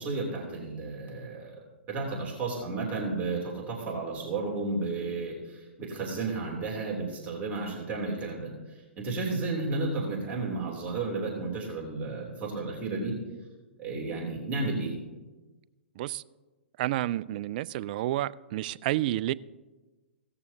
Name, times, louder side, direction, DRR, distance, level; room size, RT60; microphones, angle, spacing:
voice 1, 0.0-1.6 1.9-13.1 13.8-14.9, right 3 dB, 25° right, -2 dB, 3.2 m, -33 dB
voice 2, 16.8-19.3, right 15 dB, 45° right, 20 dB, 0.4 m, -30 dB
17.0 x 14.0 x 2.8 m, 1.2 s
hypercardioid pair, 125°, 7 cm